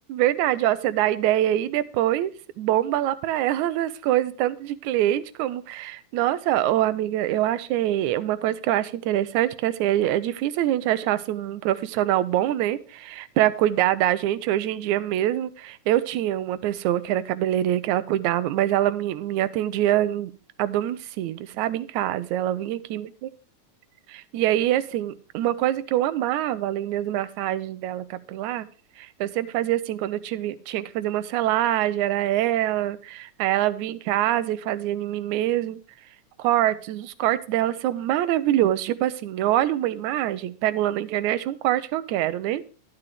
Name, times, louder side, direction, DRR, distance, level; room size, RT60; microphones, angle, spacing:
voice 1, 0.1-2.3 2.6-20.3 20.6-23.1 24.1-28.7 29.0-35.8 36.4-42.6, right 13 dB, 80° right, 15 dB, 2.0 m, -24 dB
11.0 x 10.5 x 3.3 m, 0.37 s
omnidirectional pair, 3.4 m